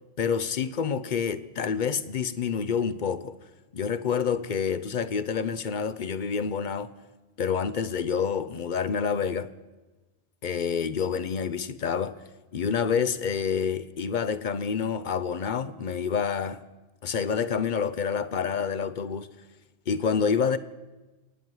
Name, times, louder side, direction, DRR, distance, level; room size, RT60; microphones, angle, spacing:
voice 1, 0.2-3.4 3.7-6.9 7.4-9.5 10.4-12.2 12.5-16.6 17.0-19.3 19.9-20.6, left 6 dB, 50° left, 0.7 m, -28 dB
24.0 x 9.6 x 4.7 m
omnidirectional pair, 1.1 m